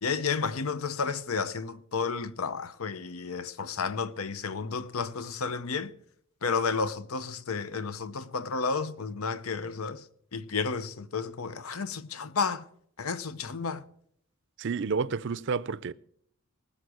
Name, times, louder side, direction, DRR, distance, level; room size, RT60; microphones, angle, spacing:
voice 1, 0.0-5.9 6.4-10.0 10.3-12.6 13.0-13.8, left 5 dB, 80° left, 0.8 m, -32 dB
voice 2, 14.6-15.9, right 5 dB, 55° right, 0.5 m, -30 dB
19.0 x 7.4 x 6.4 m
head